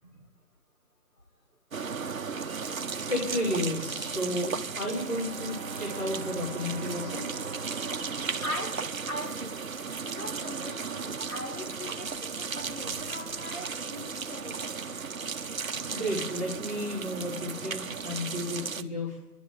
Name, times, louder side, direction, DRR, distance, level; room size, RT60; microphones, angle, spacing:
sound 1, 1.7-18.8, right 5 dB, 60° right, 0.9 m, -35 dB
voice 1, 2.8-7.7 15.9-19.2, left 1 dB, 25° left, -6 dB, 3.8 m, -33 dB
Bowed string instrument, 4.9-9.6, right 4 dB, 35° right, 1.0 m, -45 dB
voice 2, 8.4-9.6 10.0-14.5 15.9-16.0, left 1 dB, 65° left, -4 dB, 7.2 m, -40 dB
29.0 x 11.0 x 3.9 m, 0.90 s
figure-of-eight pair, 160°, 46 cm